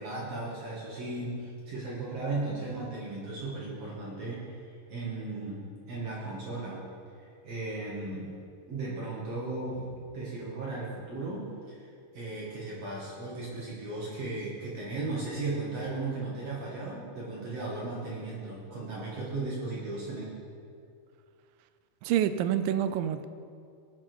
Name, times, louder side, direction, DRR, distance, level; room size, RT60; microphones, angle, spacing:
voice 1, 0.0-6.8 7.2-8.3 8.7-11.9 12.1-20.3, right 2 dB, 50° right, -6 dB, 2.8 m, -36 dB
voice 2, 22.0-23.3, right 10 dB, 85° right, 11 dB, 2.3 m, -27 dB
18.5 x 7.4 x 4.7 m, 2.4 s
omnidirectional pair, 3.9 m